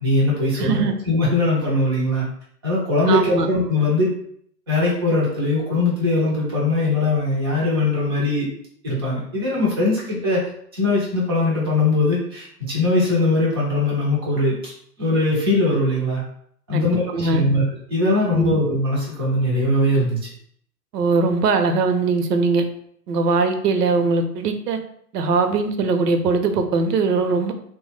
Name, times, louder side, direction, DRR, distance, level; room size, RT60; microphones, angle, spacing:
voice 1, 0.0-2.2 2.6-4.1 4.7-8.5 8.8-10.4 10.7-14.7 15.0-16.2 16.7-17.6 17.9-20.2, left 2 dB, 20° right, -5 dB, 0.3 m, -20 dB
voice 2, 0.6-0.9 3.1-3.5 16.7-17.4 18.3-18.6 20.9-22.6 23.1-24.8 25.1-27.5, right 4 dB, 75° right, 7 dB, 0.6 m, -20 dB
3.1 x 2.1 x 3.2 m, 0.66 s
hypercardioid pair, 120°, 49 cm